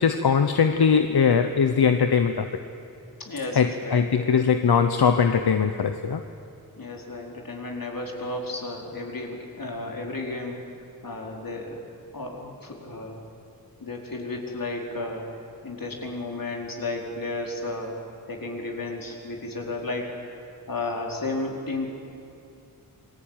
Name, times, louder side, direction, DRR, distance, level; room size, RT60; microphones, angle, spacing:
voice 1, 0.0-2.5 3.5-6.2, left 6 dB, 85° left, 8 dB, 1.0 m, -21 dB
voice 2, 3.2-4.3 6.8-10.6 11.0-11.8 12.1-13.2 13.8-15.2 15.6-18.0 18.3-21.9, left 2 dB, 60° left, 0 dB, 4.5 m, -33 dB
28.0 x 21.0 x 9.2 m, 2.7 s
wide cardioid pair, 85°, 37 cm